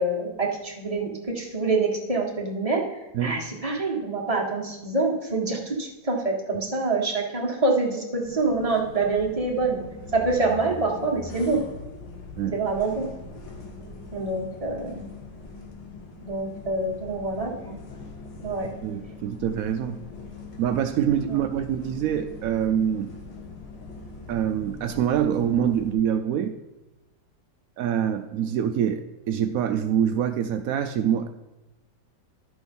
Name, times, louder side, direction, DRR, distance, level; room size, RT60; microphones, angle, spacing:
voice 1, 0.0-2.8 3.2-9.8 10.1-11.6 12.5-13.1 14.1-15.1 16.2-17.8 18.4-18.7 21.3-21.4, right 3 dB, 20° right, -2 dB, 1.6 m, -26 dB
sound 1, 8.2-25.9, left 3 dB, 80° left, 2.2 m, -42 dB
voice 2, 18.8-20.0 20.6-23.1 24.3-26.5 27.8-31.3, right 9 dB, 80° right, 8 dB, 0.7 m, -25 dB
12.0 x 6.3 x 5.4 m, 1.0 s
omnidirectional pair, 2.0 m